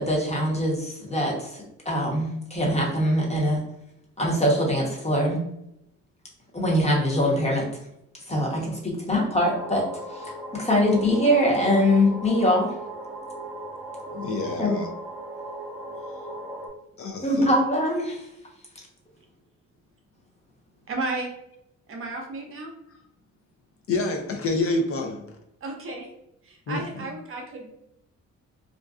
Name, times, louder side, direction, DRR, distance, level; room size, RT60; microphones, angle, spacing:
voice 1, 0.0-3.6 4.2-5.4 6.5-7.7 8.3-12.7 14.6-14.8 17.2-18.3, left 1 dB, 20° left, -2 dB, 0.9 m, -23 dB
sound 1, 9.4-16.7, right 1 dB, 5° right, 0.7 m, -38 dB
voice 2, 14.1-14.9 17.0-17.5 23.9-25.3 26.7-27.1, left 2 dB, 50° left, 3 dB, 0.4 m, -28 dB
voice 3, 20.9-21.3 21.9-22.7 25.6-26.1 26.4-27.7, right 2 dB, 45° right, 2 dB, 0.7 m, -33 dB
2.5 x 2.2 x 2.4 m, 0.80 s
cardioid pair, 90°, 30 cm